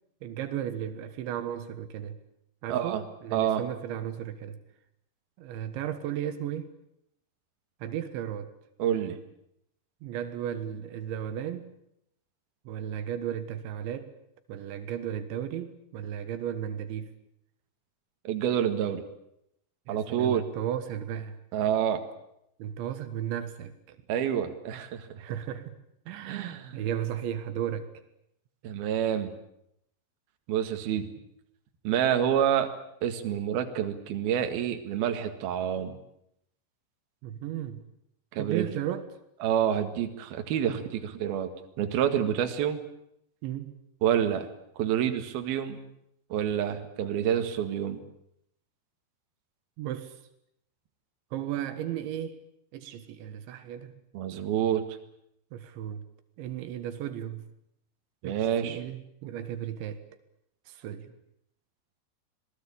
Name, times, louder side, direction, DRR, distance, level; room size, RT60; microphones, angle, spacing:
voice 1, 0.2-2.2 2.6-4.6 5.4-6.7 7.8-8.5 10.0-11.8 12.7-14.1 14.5-17.1 19.9-21.4 22.6-24.0 25.2-25.8 26.1-28.0 37.2-37.8 38.4-39.0 43.4-43.7 49.8-50.2 51.3-52.4 52.7-54.0 55.5-56.0 56.4-57.5 58.2-60.0 60.7-61.1, right 10 dB, 80° right, 3.7 m, -35 dB
voice 2, 2.7-3.0 3.3-3.6 8.8-9.2 18.3-19.0 19.9-20.4 21.5-22.0 24.1-25.1 26.3-26.8 28.6-29.3 30.5-31.1 31.9-32.7 33.0-36.0 38.3-38.7 39.4-40.8 41.2-41.5 41.8-42.8 44.0-44.5 44.8-45.8 46.3-48.0 54.1-54.8 58.2-58.8, right 9 dB, 60° right, 3.5 m, -27 dB
26.5 x 19.5 x 8.7 m
omnidirectional pair, 5.2 m